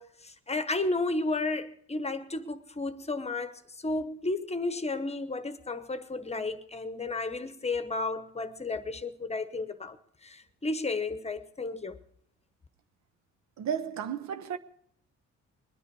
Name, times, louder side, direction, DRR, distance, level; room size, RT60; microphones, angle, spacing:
voice 1, 0.0-10.0 10.2-12.0, left 3 dB, 20° left, 1.0 m, -33 dB
voice 2, 13.6-14.6, right 8 dB, 65° right, 0.9 m, -33 dB
21.5 x 10.0 x 4.7 m
cardioid pair, 90°, 30 cm